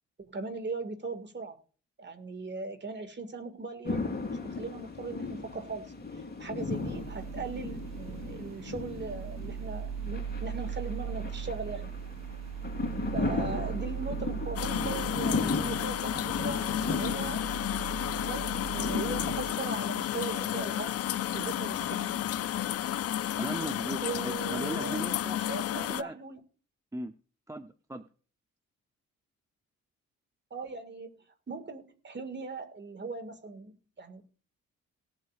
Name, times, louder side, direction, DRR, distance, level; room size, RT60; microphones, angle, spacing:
voice 1, 0.3-1.6 2.0-12.0 13.1-17.5 18.2-21.0 21.3-22.2 24.0-25.0 25.5-26.4 30.5-31.1 31.5-34.3, right 3 dB, 35° right, 2.0 m, -39 dB
sound 1, 3.8-22.7, left 3 dB, 35° left, 2.9 m, -37 dB
sound 2, 6.6-19.6, right 7 dB, 60° right, 1.1 m, -39 dB
sound 3, 14.6-26.0, left 12 dB, 55° left, 0.5 m, -32 dB
voice 2, 23.4-25.4 25.8-26.1 26.9-27.1 27.5-28.1, right 2 dB, 10° right, 0.7 m, -38 dB
18.5 x 7.6 x 2.5 m
cardioid pair, 70°, 30 cm